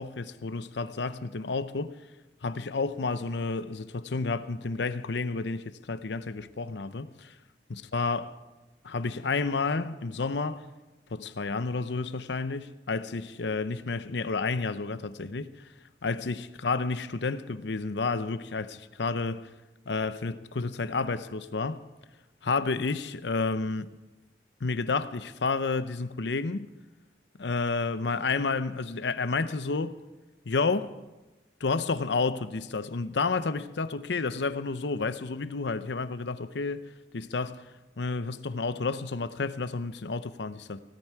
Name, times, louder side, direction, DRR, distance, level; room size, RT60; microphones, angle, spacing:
voice 1, 0.0-1.9 2.4-7.3 7.7-8.4 8.8-10.6 11.1-15.6 16.0-19.5 19.9-21.8 22.4-23.9 24.6-26.7 27.4-30.0 30.4-30.9 31.6-36.8 37.1-37.6 38.0-40.8, left 4 dB, 80° left, 0.7 m, -30 dB
17.5 x 13.5 x 4.7 m
head